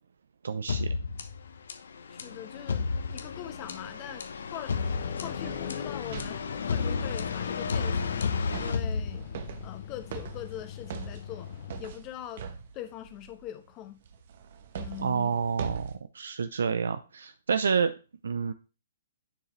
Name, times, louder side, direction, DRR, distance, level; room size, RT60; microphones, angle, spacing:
voice 1, 0.4-0.9 15.0-17.9 18.2-18.5, right 6 dB, 80° right, 11 dB, 0.5 m, -29 dB
sound 1, 0.7-9.6, left 5 dB, 75° left, 0.9 m, -32 dB
voice 2, 2.1-4.9 5.2-8.2 8.6-9.3 9.6-11.5 11.8-12.5 12.7-14.0 14.8-15.4, left 12 dB, 30° left, 9 dB, 1.0 m, -42 dB
sound 2, 4.7-11.8, left 11 dB, 50° left, 0.6 m, -40 dB
sound 3, 4.8-13.5 14.0-16.0, right 6 dB, 55° right, 1.1 m, -43 dB
10.0 x 4.7 x 3.1 m, 0.32 s
hypercardioid pair, 140°, 0 cm